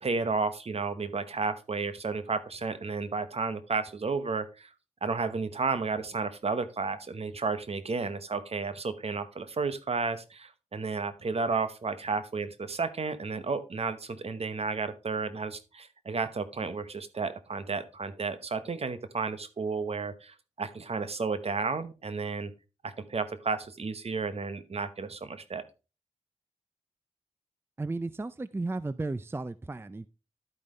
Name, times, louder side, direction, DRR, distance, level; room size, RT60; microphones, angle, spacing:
voice 1, 0.0-4.7 5.0-22.5 22.8-25.6, right 4 dB, 55° right, 12 dB, 0.9 m, -32 dB
voice 2, 27.8-30.1, right 2 dB, 20° right, 16 dB, 0.4 m, -34 dB
12.0 x 5.2 x 3.2 m, 0.32 s
cardioid pair, 50°, 13 cm